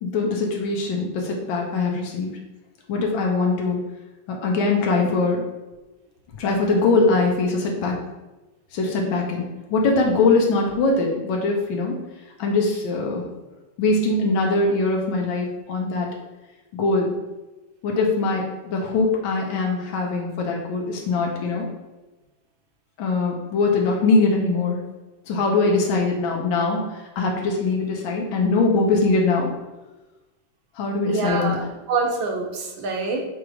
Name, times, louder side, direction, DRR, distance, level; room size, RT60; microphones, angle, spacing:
voice 1, 0.0-2.4 2.9-3.8 4.3-5.4 6.4-8.0 8.7-9.5 9.7-11.9 12.4-13.2 13.8-16.1 16.7-17.2 17.8-21.7 23.0-24.8 25.3-26.8 27.2-29.5 30.8-31.6, left 3 dB, 80° left, -1 dB, 1.7 m, -22 dB
voice 2, 31.1-33.3, right 4 dB, 75° right, 2 dB, 1.7 m, -26 dB
6.3 x 3.1 x 4.9 m, 1.1 s
omnidirectional pair, 2.1 m